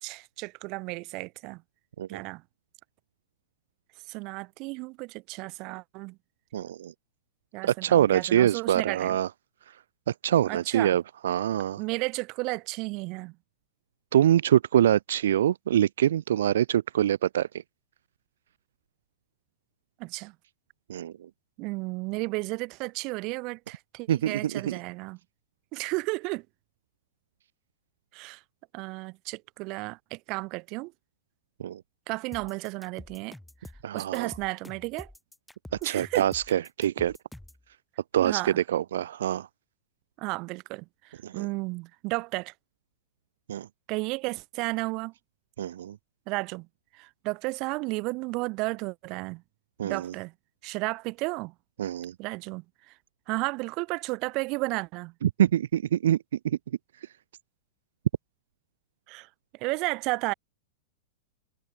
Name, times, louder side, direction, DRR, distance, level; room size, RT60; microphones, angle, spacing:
voice 1, 0.0-1.6 2.1-2.4 4.1-6.2 7.5-9.2 10.5-11.0 11.8-13.3 20.0-20.3 21.6-25.2 25.7-26.4 28.1-28.4 28.7-30.9 32.1-33.4 33.9-35.1 35.8-36.3 38.2-38.6 40.2-42.5 43.9-45.1 46.3-46.7 46.9-49.4 49.8-50.3 50.6-51.5 52.2-52.6 53.3-55.1 59.1-59.3 59.6-60.3, right 25 dB, 40° right, 4.8 m, -33 dB
voice 2, 6.5-6.9 7.6-9.3 10.1-11.8 14.1-17.5 20.9-21.3 24.1-24.8 31.6-31.8 33.8-34.3 35.8-37.2 38.1-39.5 41.2-41.5 43.5-43.7 45.6-46.0 49.8-50.1 51.8-52.1 55.2-56.2 56.4-56.6, right 11 dB, 80° right, 0.9 m, -25 dB
sound 1, 32.3-37.6, left 1 dB, 5° left, 6.4 m, -47 dB
supercardioid pair, 145°, 0 cm